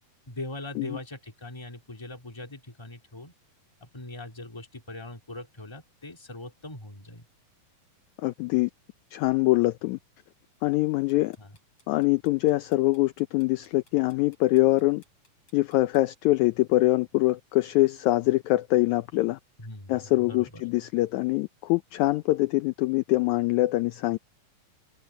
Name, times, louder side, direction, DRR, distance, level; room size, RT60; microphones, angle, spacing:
voice 1, 0.3-3.3 3.8-7.2 11.4-11.5 19.6-20.0 20.3-20.6, left 2 dB, 10° left, 2.2 m, -41 dB
voice 2, 8.2-8.7 9.1-10.0 10.6-11.4 11.9-15.0 15.5-19.4 19.9-24.2, left 19 dB, 85° left, 1.7 m, -24 dB
sound 1, 10.9-16.0, left 2 dB, 40° left, 8.3 m, -63 dB
omnidirectional pair, 4.0 m